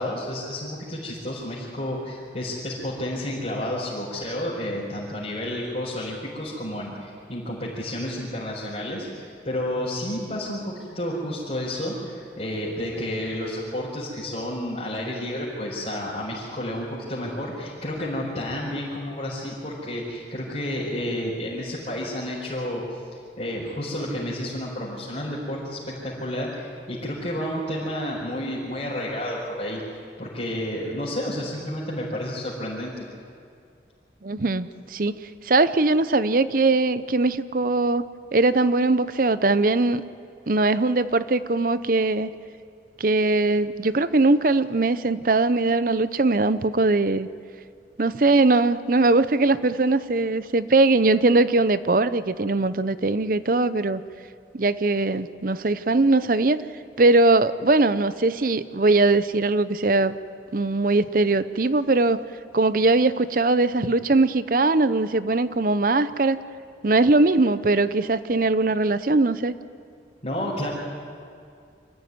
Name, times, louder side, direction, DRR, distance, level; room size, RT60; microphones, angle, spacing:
voice 1, 0.0-22.8 23.4-29.8 30.2-33.0 70.2-70.7, left 1 dB, 40° left, -8 dB, 4.6 m, -31 dB
voice 2, 34.2-35.1 35.4-38.0 38.3-40.0 40.5-42.3 43.0-47.3 48.0-54.0 54.5-56.6 57.0-60.1 60.5-62.2 62.5-66.4 66.8-69.5, right 2 dB, 50° right, 14 dB, 0.7 m, -21 dB
26.0 x 14.5 x 9.5 m, 2.3 s
head